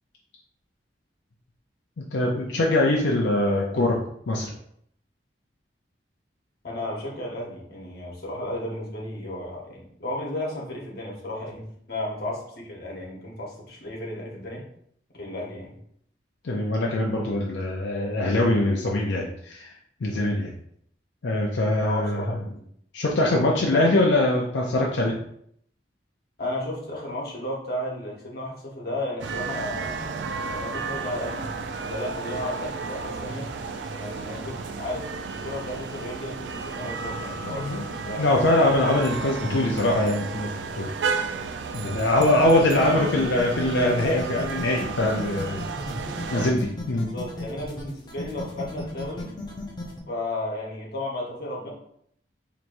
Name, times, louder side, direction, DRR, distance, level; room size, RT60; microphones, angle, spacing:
voice 1, 2.1-4.0 4.3-4.5 16.4-19.7 20.0-20.5 21.2-22.2 22.9-25.1 37.5-40.5 40.8-40.9 41.7-45.6 45.9-46.0 46.3-46.6 46.9-47.1, left 1 dB, 90° left, -1 dB, 0.5 m, -23 dB
voice 2, 6.6-14.6 15.1-15.7 21.8-22.6 23.7-24.0 26.4-33.5 34.0-35.1 35.4-37.7 38.0-38.5 42.7-43.2 46.0-46.5 46.9-49.3 50.1-51.7, left 1 dB, 60° left, -3 dB, 1.2 m, -34 dB
sound 1, 29.2-46.5, right 4 dB, 90° right, 0.4 m, -33 dB
sound 2, 42.2-50.0, left 1 dB, 25° left, 0.6 m, -35 dB
4.5 x 3.0 x 2.6 m, 0.68 s
head